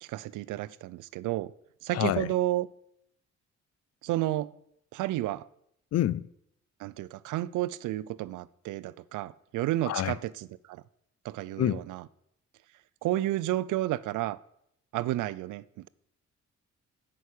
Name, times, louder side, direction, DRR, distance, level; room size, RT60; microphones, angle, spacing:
voice 1, 0.0-1.5 1.8-2.7 4.0-4.5 4.9-5.5 6.8-10.8 11.2-12.0 13.0-14.4 14.9-15.9, right 15 dB, 85° right, 0.5 m, -31 dB
voice 2, 1.9-2.3 5.9-6.2 9.9-10.2 11.6-11.8, left 12 dB, 55° left, 0.5 m, -27 dB
9.3 x 6.1 x 8.5 m
cardioid pair, 90°, 30 cm